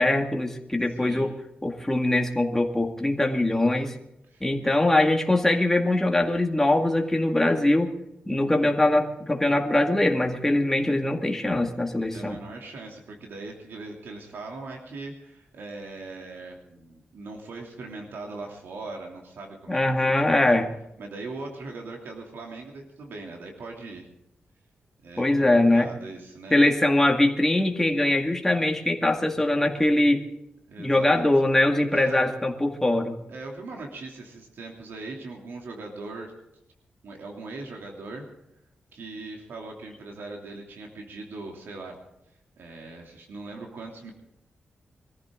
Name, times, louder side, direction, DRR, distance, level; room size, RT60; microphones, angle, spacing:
voice 1, 0.0-1.3 1.6-3.9 4.4-7.9 8.3-12.4 19.7-20.7 25.2-25.9 26.5-30.3 30.8-33.2, left 1 dB, 10° left, 2 dB, 2.0 m, -22 dB
voice 2, 1.0-1.3 4.3-4.8 12.0-20.6 21.0-24.1 25.0-25.5 25.7-26.6 30.7-31.2 31.9-32.3 33.3-36.3 37.0-38.3 38.9-41.9 42.6-44.1, right 3 dB, 80° right, 1 dB, 2.9 m, -40 dB
22.5 x 14.5 x 3.8 m, 0.82 s
wide cardioid pair, 130°, 4 cm